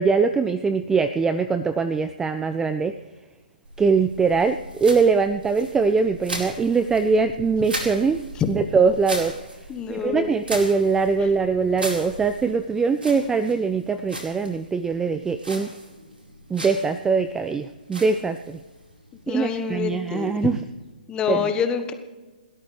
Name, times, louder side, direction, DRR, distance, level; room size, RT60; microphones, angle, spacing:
voice 1, 0.0-2.9 3.8-9.3 9.9-15.7 16.5-18.6 19.3-20.6 21.3-21.5, right 5 dB, 10° right, 11 dB, 0.4 m, -22 dB
sound 1, 3.6-20.9, right 1 dB, 85° right, 4.6 m, -38 dB
voice 2, 9.7-10.3 11.2-11.3 19.3-20.3 21.1-21.9, left 7 dB, 15° left, 8 dB, 1.3 m, -26 dB
30.0 x 13.0 x 3.3 m, 1.3 s
figure-of-eight pair, 135°, 5 cm